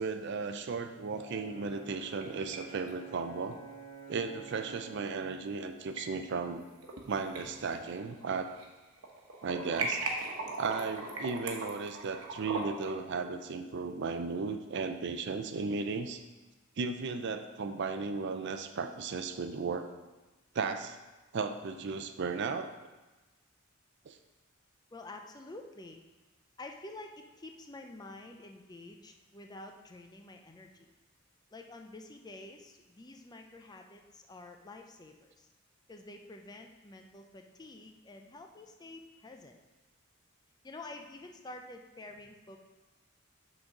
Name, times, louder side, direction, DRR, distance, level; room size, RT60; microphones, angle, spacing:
voice 1, 0.0-3.6 4.1-6.6 7.1-8.5 9.4-10.0 10.6-16.2 16.8-19.9 20.5-21.0 21.3-22.7 24.1-24.2, right 4 dB, 55° right, 8 dB, 0.5 m, -35 dB
Brass instrument, 1.0-5.3, right 5 dB, 80° left, 2.1 m, -49 dB
sound 1, 1.9-2.6 2.9-3.0 4.5-4.6 5.6-6.0 6.5-7.0 7.4-8.7 9.0-12.9, right 3 dB, 85° right, 1.1 m, -38 dB
voice 2, 24.9-26.0 26.6-30.9 31.5-35.5 35.9-39.6 40.6-42.6, left 2 dB, 20° left, 4 dB, 0.5 m, -49 dB
6.3 x 4.0 x 5.9 m, 1.2 s
head